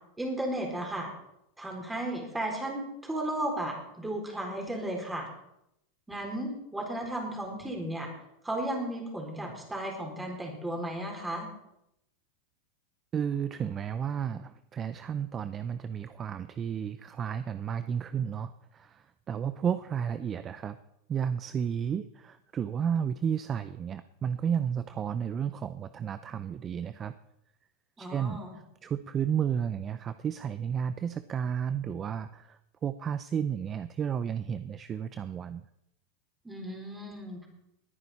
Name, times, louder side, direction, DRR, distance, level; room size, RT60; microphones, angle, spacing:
voice 1, 0.2-1.1 1.6-5.3 6.1-8.1 8.4-11.5 28.0-28.6 36.4-37.5, right 1 dB, 10° right, 1 dB, 4.2 m, -34 dB
voice 2, 13.1-20.8 21.1-27.1 28.0-28.4 28.8-35.6, right 8 dB, 30° right, 13 dB, 0.6 m, -32 dB
20.0 x 9.8 x 4.3 m, 0.81 s
supercardioid pair, 120°, 0 cm